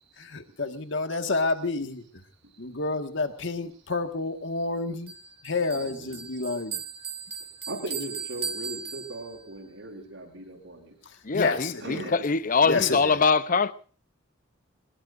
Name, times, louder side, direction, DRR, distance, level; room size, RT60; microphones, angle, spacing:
voice 1, 0.2-2.0 2.6-5.1 5.4-6.8 11.3-12.1 12.7-13.1, left 3 dB, 65° left, 1.8 m, -29 dB
Bell, 5.1-9.6, right 6 dB, 30° right, 2.6 m, -37 dB
voice 2, 5.7-6.2 7.7-10.9 11.8-12.3 13.0-13.2, right 2 dB, 70° right, 6.6 m, -39 dB
voice 3, 11.2-13.7, left 5 dB, 45° left, 0.8 m, -23 dB
23.5 x 21.0 x 2.7 m
head